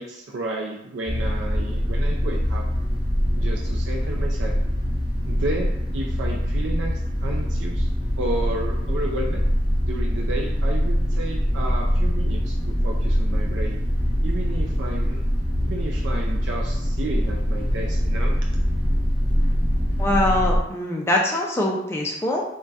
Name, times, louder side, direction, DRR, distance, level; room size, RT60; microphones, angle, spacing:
voice 1, 0.0-2.6 3.4-4.6 5.3-7.9 8.2-9.4 9.8-13.8 14.2-15.2 15.6-18.3, right 2 dB, 75° right, -1 dB, 0.4 m, -32 dB
sound 1, 1.1-20.6, equal, 25° right, 0.9 m, -23 dB
voice 2, 20.0-22.4, left 1 dB, 15° left, -2 dB, 0.3 m, -23 dB
3.8 x 2.2 x 2.3 m, 0.81 s
head